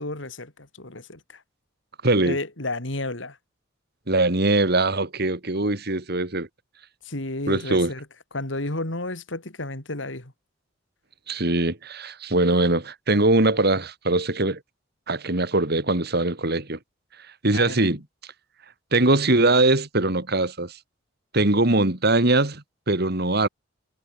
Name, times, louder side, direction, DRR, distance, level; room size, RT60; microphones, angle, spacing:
voice 1, 0.0-1.4 2.2-3.4 7.0-8.1 8.3-10.3 17.5-17.9, left 2 dB, 75° left, 3.6 m, -32 dB
voice 2, 2.0-2.4 4.1-6.5 7.5-7.9 11.3-14.6 15.1-16.8 17.4-18.0 18.9-20.7 21.3-23.5, right 2 dB, 55° right, 3.0 m, -21 dB
head